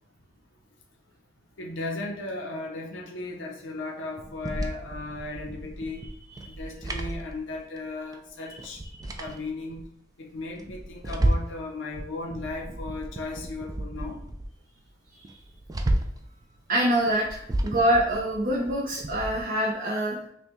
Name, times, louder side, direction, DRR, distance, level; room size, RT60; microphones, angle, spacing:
voice 1, 1.6-6.0 6.4-8.8 9.2-9.8 10.2-14.2, left 2 dB, 70° left, 0 dB, 0.6 m, -36 dB
sound 1, 4.2-7.9 8.1-8.2 8.6-9.8 10.3-11.6 11.9-14.5 14.9-15.0 15.2-16.3 16.9-19.4, right 1 dB, 20° right, 0.3 m, -32 dB
voice 2, 16.7-20.2, right 1 dB, 45° right, -3 dB, 0.7 m, -25 dB
5.5 x 2.2 x 3.0 m, 0.68 s
head